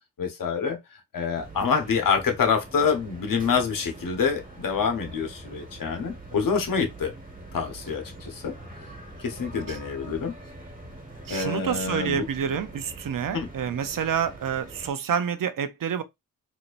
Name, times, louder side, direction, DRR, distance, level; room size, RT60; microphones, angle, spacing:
voice 1, 0.2-0.8 1.1-7.1 7.5-8.6 9.2-10.3 11.3-12.3 13.3-13.5, left 6 dB, 65° left, 1.1 m, -26 dB
sound 1, 1.3-14.9, right 1 dB, 25° right, 1.5 m, -44 dB
voice 2, 11.3-16.0, right 8 dB, 65° right, 0.7 m, -28 dB
4.2 x 2.7 x 2.6 m
cardioid pair, 70°, 35 cm